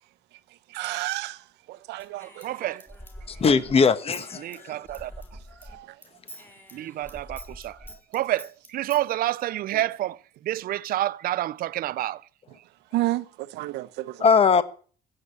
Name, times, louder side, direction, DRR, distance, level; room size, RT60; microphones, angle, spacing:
voice 1, 0.7-1.4 1.9-2.3 5.7-5.9 12.9-13.2 13.5-14.2, right 18 dB, 85° right, 0.9 m, -29 dB
Human voice / Scissors, 2.0-5.8 6.0-9.0, equal, 10° left, 3.9 m, -45 dB
voice 2, 2.4-2.9 4.4-5.1 6.7-7.8 8.1-10.2 10.4-12.2, right 14 dB, 60° right, 0.6 m, -28 dB
voice 3, 3.3-4.7 14.2-14.6, left 5 dB, 35° left, 1.3 m, -20 dB
15.5 x 7.9 x 8.2 m
cardioid pair, 110°, 17 cm